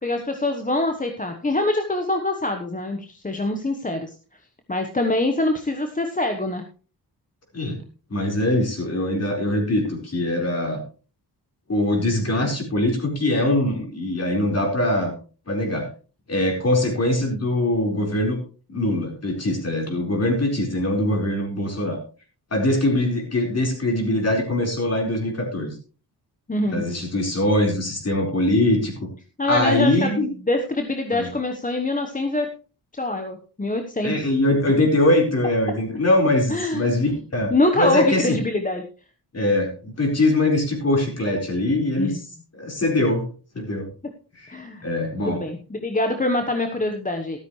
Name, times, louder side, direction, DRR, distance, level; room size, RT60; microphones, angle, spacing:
voice 1, 0.0-4.2 4.7-6.6 26.5-26.8 29.4-32.5 33.0-34.3 34.7-34.8 36.5-37.1 37.5-38.8 42.0-42.2 44.5-44.9 45.2-47.4, left 2 dB, 20° left, 5 dB, 1.1 m, -24 dB
voice 2, 8.1-10.8 11.7-15.1 15.5-15.9 16.3-18.4 18.7-22.0 22.5-25.7 26.7-29.1 29.5-30.3 31.1-31.3 34.0-37.5 37.8-38.4 39.3-42.1 42.5-43.3 43.5-43.9 44.4-44.5 44.8-45.4, left 1 dB, 40° left, 1 dB, 4.5 m, -22 dB
13.0 x 13.0 x 3.2 m, 0.36 s
wide cardioid pair, 140°, 40 cm